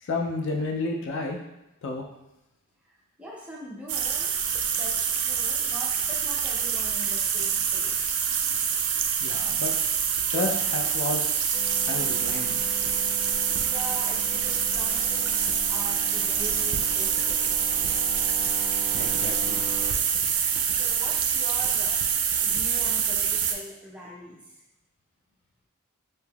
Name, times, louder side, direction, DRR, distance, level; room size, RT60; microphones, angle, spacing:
voice 1, 0.0-1.4 1.8-2.1 9.2-9.7 10.3-12.6 19.0-19.7, left 2 dB, 60° left, 1 dB, 0.4 m, -31 dB
voice 2, 3.2-4.3 4.7-8.2 9.5-9.6 13.3-15.4 15.7-17.5 20.7-22.0 22.4-24.5, equal, 5° right, -5 dB, 0.5 m, -42 dB
sound 1, 3.9-23.5, right 7 dB, 80° right, 0.3 m, -26 dB
sound 2, 11.5-19.9, right 1 dB, 30° right, 0.9 m, -41 dB
3.4 x 2.8 x 2.2 m, 0.93 s
head